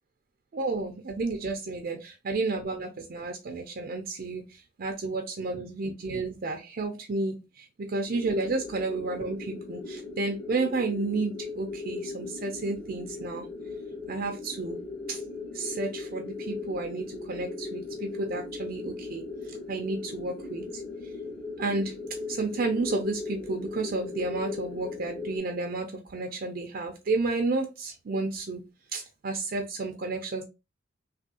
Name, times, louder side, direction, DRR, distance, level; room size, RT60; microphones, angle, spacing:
voice 1, 0.5-13.5 14.1-14.8 15.1-15.2 15.5-20.8 21.6-28.6 28.9-30.5, right 3 dB, 45° right, 0.4 m, -31 dB
sound 1, 8.0-25.4, left 3 dB, 50° left, 1.3 m, -38 dB
3.4 x 2.3 x 2.7 m
head